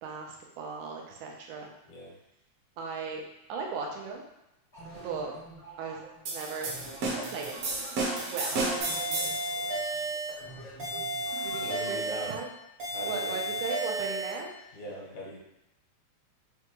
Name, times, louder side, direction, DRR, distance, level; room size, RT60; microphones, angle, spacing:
voice 1, 0.0-1.7 2.8-3.2 3.5-4.2 4.9-5.3 5.8-6.0 6.3-6.7 7.1-7.6 8.3-8.6 11.4-12.5 13.0-14.5, right 5 dB, 90° right, 0 dB, 2.2 m, -37 dB
sound 1, 4.7-12.2, right 2 dB, 55° left, 0.4 m, -48 dB
sound 2, 6.3-9.5, right 2 dB, 70° right, 1.7 m, -32 dB
sound 3, 8.8-10.4 10.8-12.4 12.8-14.4, right 1 dB, 50° right, 0.7 m, -33 dB
voice 2, 9.2-10.0 10.8-10.9 11.6-12.3 12.9-13.5 14.7-15.4, equal, 85° left, -5 dB, 2.6 m, -42 dB
5.8 x 2.3 x 3.0 m, 0.87 s
omnidirectional pair, 3.4 m